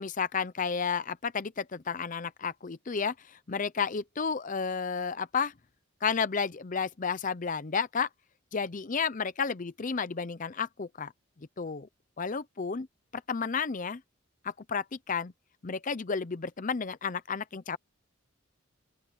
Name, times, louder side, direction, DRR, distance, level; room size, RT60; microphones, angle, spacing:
voice 1, 0.0-5.5 6.0-8.1 8.5-11.1 11.6-11.9 12.2-12.9 13.1-14.0 14.4-15.3 15.6-17.8, left 5 dB, 40° left, 0.6 m, -32 dB
open air
head